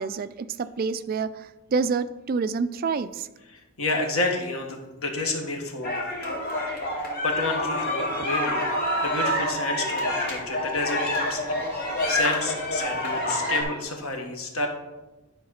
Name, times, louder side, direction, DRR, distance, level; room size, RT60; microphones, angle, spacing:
voice 1, 0.0-3.3, right 5 dB, 45° right, 13 dB, 0.3 m, -28 dB
voice 2, 3.5-6.3 7.2-14.7, left 2 dB, 85° left, 3 dB, 1.4 m, -30 dB
sound 1, 5.8-13.6, left 1 dB, 45° left, 2.1 m, -27 dB
10.5 x 4.0 x 5.6 m, 1.1 s
head